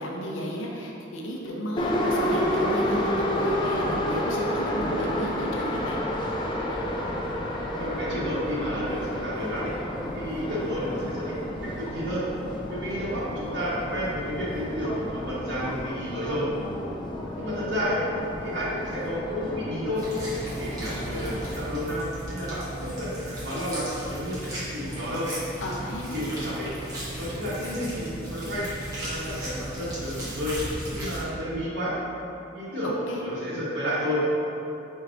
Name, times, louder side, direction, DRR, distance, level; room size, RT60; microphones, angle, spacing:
voice 1, 0.0-6.0 25.6-26.1 32.8-33.3, equal, 85° left, -2 dB, 0.6 m, -34 dB
Subway metro underground, 1.8-21.6, left 1 dB, 25° left, 0.3 m, -30 dB
voice 2, 7.8-9.7 10.1-12.3 12.7-16.5 17.4-18.0 18.4-20.0 20.6-25.3 26.1-26.7 27.2-28.7 29.0-30.6 30.9-31.9 32.5-32.9 33.2-34.2, equal, 65° right, -8 dB, 1.3 m, -31 dB
sound 1, 19.9-31.2, right 1 dB, 20° right, 1.1 m, -36 dB
4.6 x 4.5 x 2.5 m, 2.9 s
head